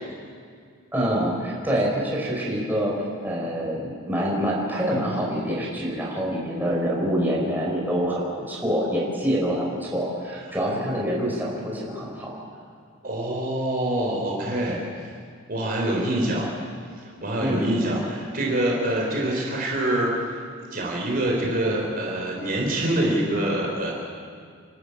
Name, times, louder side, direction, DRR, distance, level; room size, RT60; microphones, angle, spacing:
voice 1, 0.9-3.0 3.2-12.3 17.4-17.7, equal, 10° right, -4 dB, 5.2 m, -26 dB
voice 2, 13.0-14.8 15.5-16.5 17.0-20.4 20.7-23.9, right 1 dB, 45° right, -1 dB, 4.4 m, -25 dB
29.0 x 13.0 x 8.5 m, 2.2 s
head